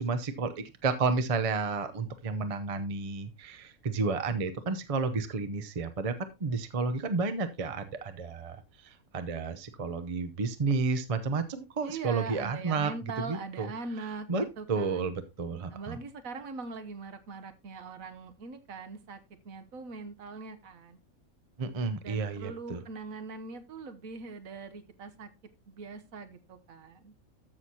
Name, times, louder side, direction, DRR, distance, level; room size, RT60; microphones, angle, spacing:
voice 1, 0.0-6.1 6.4-8.6 8.8-12.9 13.2-13.7 14.0-16.0 21.6-22.8, right 4 dB, 35° right, 10 dB, 0.6 m, -31 dB
voice 2, 11.8-15.1 15.7-19.2 19.4-21.0 22.0-25.3 25.7-27.1, right 4 dB, 70° right, 10 dB, 1.4 m, -41 dB
13.5 x 6.3 x 2.8 m, 0.25 s
omnidirectional pair, 1.5 m